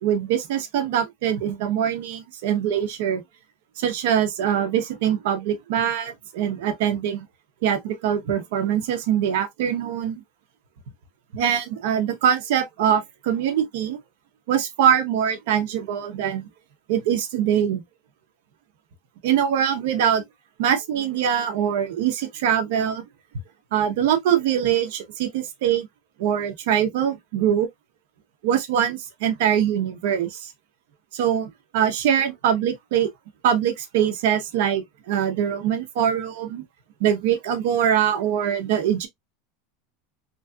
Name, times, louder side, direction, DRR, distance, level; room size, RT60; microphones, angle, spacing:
voice 1, 0.0-3.2 3.8-7.2 7.6-10.2 11.3-14.0 14.5-16.5 16.9-17.8 19.2-20.2 20.6-23.0 23.7-25.9 26.2-27.7 28.4-30.3 31.1-33.1 33.4-36.6 37.0-39.1, right 9 dB, 70° right, 0.8 m, -23 dB
3.0 x 2.7 x 2.3 m
supercardioid pair, 150°, 0 cm